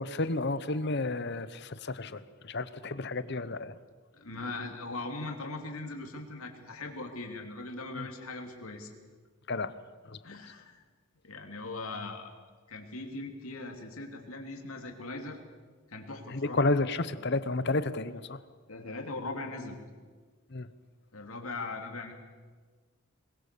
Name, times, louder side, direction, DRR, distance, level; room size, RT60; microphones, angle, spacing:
voice 1, 0.0-3.8 8.0-8.1 9.5-9.7 10.1-10.2 16.3-18.4 20.5-20.7, left 2 dB, 50° left, 14 dB, 0.9 m, -31 dB
voice 2, 4.1-8.9 10.2-10.8 11.2-12.3 12.7-15.4 15.9-16.6 18.7-19.8 21.1-22.1, left 2 dB, 80° left, 3 dB, 2.9 m, -40 dB
21.5 x 20.5 x 6.9 m, 1.5 s
head